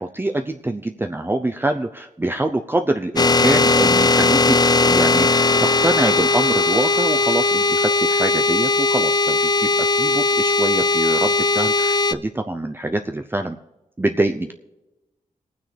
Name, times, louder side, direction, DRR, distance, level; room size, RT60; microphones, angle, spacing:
voice 1, 0.0-4.6 4.8-13.6 14.0-14.5, right 1 dB, 15° right, 5 dB, 0.6 m, -25 dB
sound 1, 3.2-12.1, left 3 dB, 30° left, 0.4 m, -18 dB
20.0 x 9.3 x 3.3 m, 0.99 s
wide cardioid pair, 75°, 13 cm